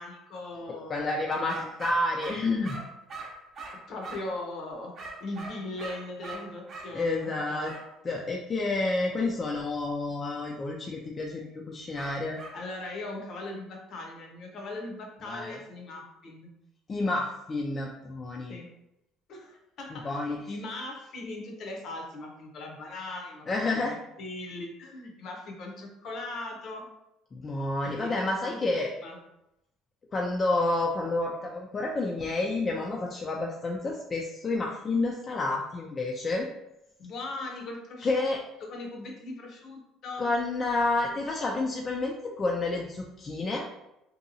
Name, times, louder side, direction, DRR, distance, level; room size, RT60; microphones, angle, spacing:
voice 1, 0.0-1.7 3.9-7.7 12.5-16.5 18.5-18.7 19.3-23.5 23.7-26.8 27.8-28.2 28.5-28.6 29.0-29.2 37.0-38.3 38.6-40.3, left 2 dB, 55° left, 1 dB, 0.7 m, -39 dB
voice 2, 0.9-2.8 6.9-7.7 8.0-12.4 15.3-15.6 16.9-18.6 19.9-20.4 23.5-24.0 27.3-28.9 30.1-36.5 38.0-38.4 40.2-43.7, left 2 dB, 30° left, -1 dB, 0.3 m, -29 dB
sound 1, 1.5-4.4 5.0-6.9 7.6-7.9 12.0-12.6, right 2 dB, 45° right, 0.7 m, -42 dB
2.7 x 2.2 x 2.6 m, 0.88 s
cardioid pair, 105°, 0 cm